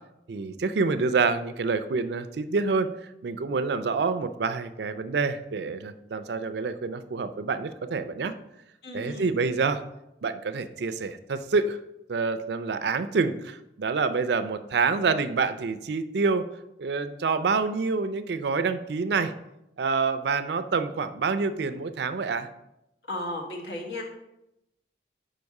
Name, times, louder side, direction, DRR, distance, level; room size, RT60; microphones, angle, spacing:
voice 1, 0.3-2.9 3.2-8.3 8.9-9.8 10.2-11.8 12.1-16.4 16.8-19.3 19.8-22.5, right 4 dB, 70° right, 12 dB, 0.4 m, -27 dB
voice 2, 8.8-9.4 23.1-24.0, left 1 dB, 70° left, -1 dB, 1.4 m, -34 dB
5.2 x 4.7 x 5.3 m, 0.88 s
head